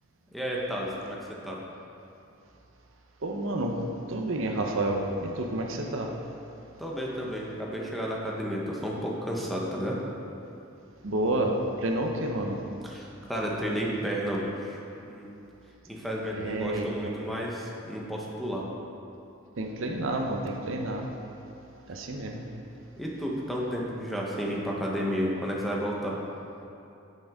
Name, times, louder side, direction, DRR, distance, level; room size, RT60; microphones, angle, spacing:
voice 1, 0.3-1.6 6.8-10.0 12.8-14.8 15.0-15.3 15.9-18.6 23.0-26.2, equal, ahead, -4 dB, 1.0 m, -32 dB
voice 2, 3.2-3.8 4.1-6.1 11.0-12.6 16.4-16.9 19.6-21.1 21.9-22.4, right 1 dB, 70° right, 2 dB, 0.8 m, -29 dB
8.8 x 7.6 x 3.7 m, 2.7 s
head